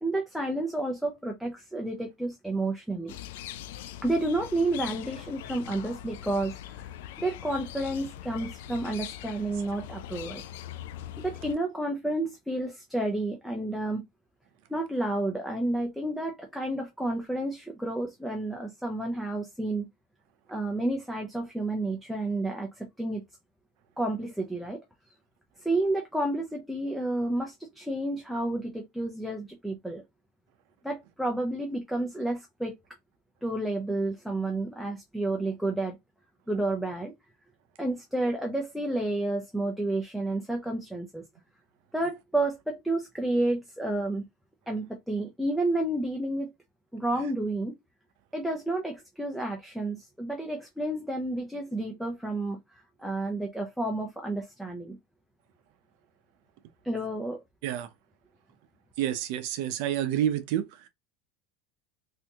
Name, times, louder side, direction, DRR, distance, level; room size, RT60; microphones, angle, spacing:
voice 1, 0.0-3.1 4.0-6.6 7.2-10.4 11.2-14.0 14.7-19.9 20.5-23.2 24.0-24.8 25.6-30.0 30.8-32.8 33.4-36.0 36.5-37.1 37.8-41.2 41.9-44.3 44.7-46.5 46.9-47.7 48.3-52.6 53.0-55.0 56.8-57.4, right 2 dB, ahead, 0.4 m, -30 dB
sound 1, 3.1-11.5, left 12 dB, 80° left, 0.3 m, -42 dB
voice 2, 59.0-60.9, right 11 dB, 55° right, 0.6 m, -29 dB
2.8 x 2.6 x 3.4 m
supercardioid pair, 165°, 0 cm